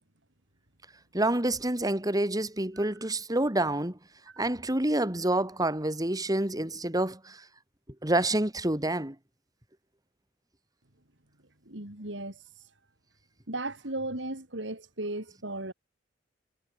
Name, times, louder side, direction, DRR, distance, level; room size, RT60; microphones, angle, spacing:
voice 1, 1.1-4.0 4.4-7.4 8.0-9.1, right 1 dB, 20° right, 2.8 m, -28 dB
voice 2, 11.6-12.4 13.5-15.7, right 2 dB, 70° right, 5.0 m, -36 dB
head